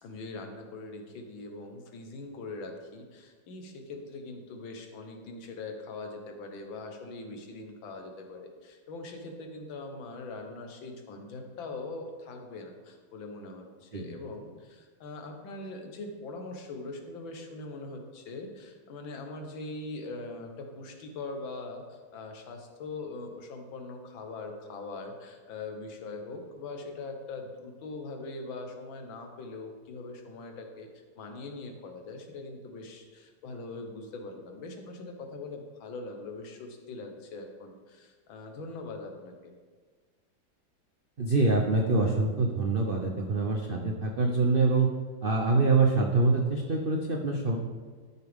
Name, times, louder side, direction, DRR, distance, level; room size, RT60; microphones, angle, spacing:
voice 1, 0.0-39.5, left 3 dB, 85° left, 4 dB, 1.9 m, -42 dB
voice 2, 41.2-44.9 45.2-47.6, right 3 dB, 85° right, 2 dB, 0.4 m, -25 dB
12.5 x 6.8 x 3.6 m, 1.5 s
omnidirectional pair, 2.1 m